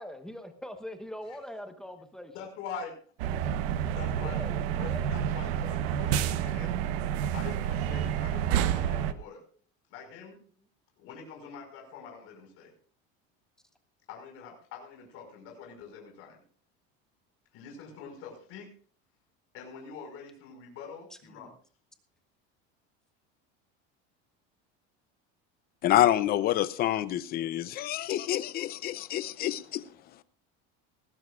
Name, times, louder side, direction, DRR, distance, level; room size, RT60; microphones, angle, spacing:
voice 1, 0.0-2.3 4.2-5.1 21.3-21.5, equal, ahead, 1.1 m, -42 dB
voice 2, 2.3-3.0 3.9-6.8 7.3-9.4 9.9-10.4 11.0-12.7 14.1-16.4 17.5-18.7 19.5-21.5, left 6 dB, 50° left, 5.3 m, -44 dB
sound 1, 3.2-9.1, right 9 dB, 85° right, 1.1 m, -29 dB
voice 3, 25.8-29.8, left 13 dB, 30° left, 0.6 m, -27 dB
19.5 x 15.5 x 2.4 m
cardioid pair, 170°, 30 cm